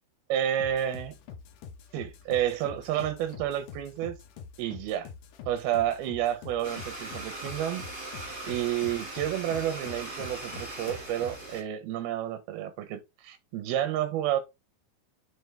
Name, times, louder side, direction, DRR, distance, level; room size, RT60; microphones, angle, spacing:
voice 1, 0.3-1.1 1.9-4.2 4.6-5.1 5.5-7.8 8.4-14.4, right 11 dB, 85° right, 3.0 m, -30 dB
sound 1, 0.6-11.6, left 6 dB, 70° left, 2.2 m, -46 dB
Domestic sounds home sounds, 6.6-11.6, right 2 dB, 10° right, 1.2 m, -40 dB
7.0 x 4.1 x 3.4 m
omnidirectional pair, 4.3 m